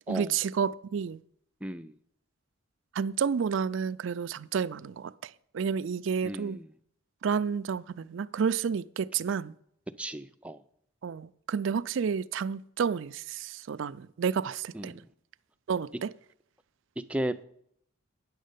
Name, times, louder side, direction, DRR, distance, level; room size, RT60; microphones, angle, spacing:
voice 1, 0.1-1.2 2.9-6.6 7.2-9.5 11.0-15.0 15.7-16.1, right 6 dB, 70° right, 0.4 m, -30 dB
voice 2, 1.6-1.9 6.2-6.7 10.0-10.6 14.7-15.0 17.1-17.4, right 1 dB, 5° right, 0.4 m, -35 dB
9.6 x 6.4 x 6.7 m
head